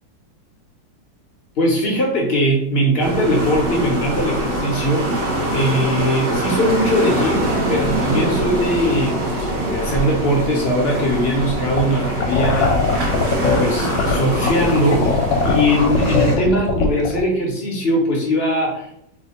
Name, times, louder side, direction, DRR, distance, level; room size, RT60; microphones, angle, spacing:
voice 1, 1.6-5.1 5.5-15.1 15.4-18.9, equal, 50° left, -1 dB, 0.7 m, -20 dB
sound 1, 3.0-16.4, right 1 dB, 65° right, 1.5 m, -23 dB
sound 2, 11.6-17.2, left 4 dB, 85° left, 1.3 m, -20 dB
3.4 x 2.1 x 4.1 m, 0.75 s
omnidirectional pair, 2.0 m